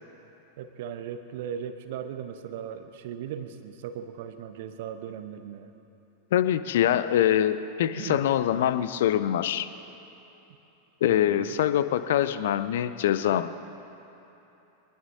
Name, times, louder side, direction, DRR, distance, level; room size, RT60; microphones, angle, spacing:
voice 1, 0.6-5.7 7.9-8.3 11.1-11.6, right 8 dB, 55° right, 9 dB, 1.0 m, -38 dB
voice 2, 6.3-9.7 11.0-13.5, left 11 dB, 55° left, 13 dB, 0.6 m, -24 dB
23.5 x 20.0 x 2.8 m, 3.0 s
figure-of-eight pair, 90°, 0 cm